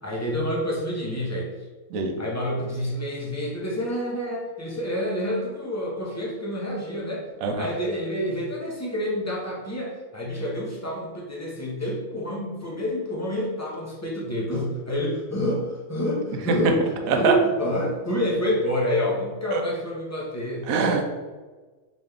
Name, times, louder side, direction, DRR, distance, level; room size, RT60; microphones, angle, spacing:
voice 1, 0.0-1.5 2.2-7.2 7.6-20.7, equal, 20° left, -4 dB, 0.4 m, -28 dB
voice 2, 20.6-21.0, right 5 dB, 75° right, 4 dB, 1.0 m, -23 dB
3.9 x 3.0 x 3.4 m, 1.3 s
omnidirectional pair, 1.6 m